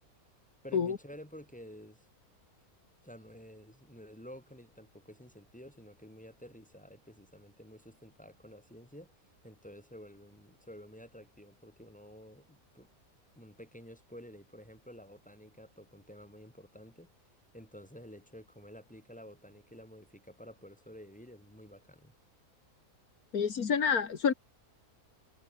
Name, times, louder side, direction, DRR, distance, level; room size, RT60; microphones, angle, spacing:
voice 1, 0.6-2.1 3.0-9.2 9.4-12.9 13.3-17.1 17.5-22.2, equal, 5° left, 6.8 m, -51 dB
voice 2, 23.3-24.3, left 6 dB, 80° left, 2.1 m, -28 dB
omnidirectional pair, 1.5 m